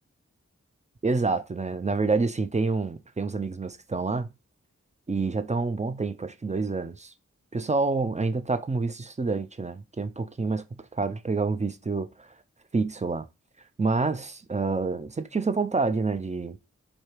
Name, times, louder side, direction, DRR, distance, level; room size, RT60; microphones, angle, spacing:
voice 1, 1.0-4.3 5.1-7.1 7.5-12.3 12.7-13.3 13.8-16.6, right 3 dB, 25° right, 0.4 m, -28 dB
3.2 x 2.7 x 4.4 m
wide cardioid pair, 70°, 29 cm